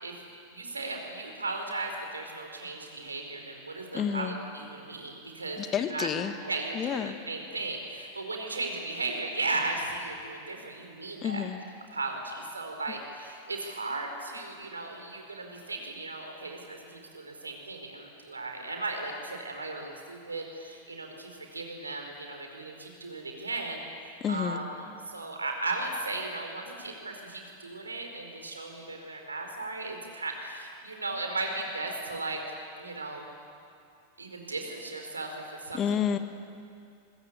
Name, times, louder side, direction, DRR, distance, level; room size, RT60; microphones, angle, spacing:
voice 1, 0.5-5.6 5.9-6.1 6.5-11.5 11.9-23.8 24.3-24.7 25.1-32.4 32.8-33.3 34.2-36.0, right 2 dB, 80° right, 3 dB, 4.4 m, -36 dB
voice 2, 3.9-4.4 5.6-6.4 6.7-7.2 11.2-11.6 24.2-24.6 35.7-36.2, left 8 dB, 25° left, 10 dB, 1.4 m, -29 dB
24.5 x 22.5 x 8.5 m, 2.5 s
figure-of-eight pair, 90°, 0 cm